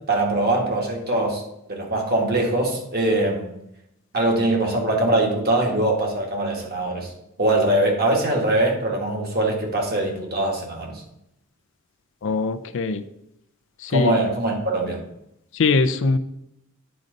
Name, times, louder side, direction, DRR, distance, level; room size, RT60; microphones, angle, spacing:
voice 1, 0.1-1.4 1.7-3.5 4.1-7.1 7.4-11.0 13.9-15.0, right 1 dB, 45° right, 0 dB, 1.7 m, -22 dB
voice 2, 12.2-13.0 13.8-14.2 15.5-16.2, left 3 dB, 60° left, 11 dB, 0.5 m, -22 dB
8.9 x 3.9 x 5.2 m, 0.80 s
head